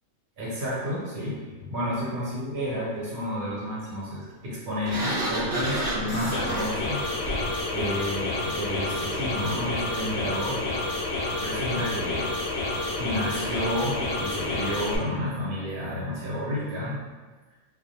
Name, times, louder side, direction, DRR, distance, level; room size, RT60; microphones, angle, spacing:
voice 1, 0.4-7.0 7.7-10.6 11.4-12.3 13.0-17.0, left 1 dB, 80° right, -7 dB, 1.2 m, -31 dB
Sliding door, 4.8-7.6, right 1 dB, 55° right, 0.8 m, -30 dB
sound 1, 6.1-15.0, left 2 dB, 60° left, 0.7 m, -29 dB
2.3 x 2.1 x 2.6 m, 1.3 s
omnidirectional pair, 1.4 m